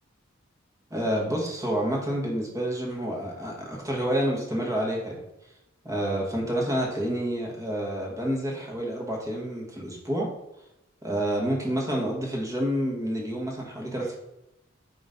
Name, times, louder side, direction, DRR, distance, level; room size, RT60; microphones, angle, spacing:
voice 1, 0.9-5.1 5.8-10.3 11.0-14.2, right 1 dB, 15° right, -2 dB, 1.7 m, -28 dB
9.2 x 3.8 x 3.9 m, 0.89 s
head